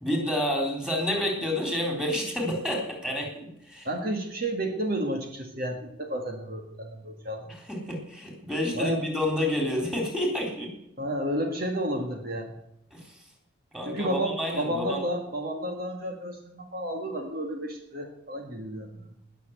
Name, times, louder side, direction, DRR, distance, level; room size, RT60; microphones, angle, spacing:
voice 1, 0.0-3.9 7.7-10.7 12.9-13.0 13.7-15.0, left 1 dB, 5° right, 0 dB, 3.7 m, -29 dB
voice 2, 3.9-7.5 8.8-9.0 11.0-12.5 13.9-19.1, right 1 dB, 45° right, 3 dB, 1.8 m, -31 dB
19.5 x 6.8 x 8.0 m, 0.80 s
head